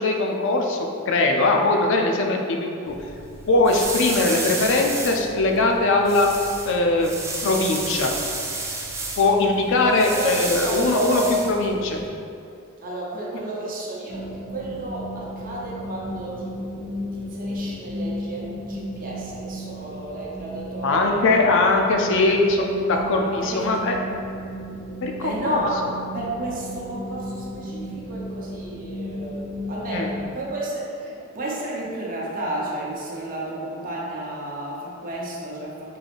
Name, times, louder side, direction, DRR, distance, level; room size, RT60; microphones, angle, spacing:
voice 1, 0.0-2.9 3.5-6.3 6.7-7.1 7.4-8.1 9.2-12.0 20.8-24.0 25.0-25.6 29.9-30.1, left 2 dB, 65° left, 2 dB, 0.4 m, -21 dB
sound 1, 2.9-12.1, right 2 dB, 15° right, 0.3 m, -32 dB
voice 2, 9.8-11.2 12.8-21.4 23.2-23.7 25.2-25.8 26.1-36.0, right 2 dB, 45° right, -5 dB, 0.7 m, -32 dB
sound 2, 14.1-30.3, equal, 85° left, 0.9 m, -34 dB
3.7 x 3.4 x 2.5 m, 2.5 s
head